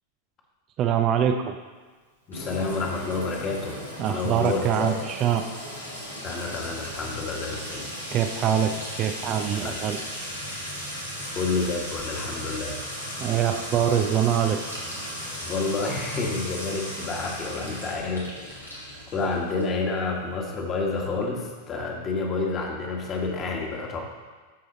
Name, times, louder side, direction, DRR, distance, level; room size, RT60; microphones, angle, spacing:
voice 1, 0.8-1.5 4.0-5.4 8.1-8.7 9.0-10.0 13.2-14.6, right 9 dB, 35° right, 6 dB, 0.5 m, -24 dB
Sink (filling or washing) / Trickle dribble / Fill (with liquid), 2.3-19.8, equal, 85° left, 2.3 m, -36 dB
voice 2, 2.3-3.8 4.1-5.0 6.2-7.9 9.5-9.8 11.3-12.9 15.4-18.7 19.1-24.0, left 3 dB, 30° left, 0 dB, 1.6 m, -29 dB
13.0 x 4.9 x 4.0 m, 1.4 s
figure-of-eight pair, 90°, 0 cm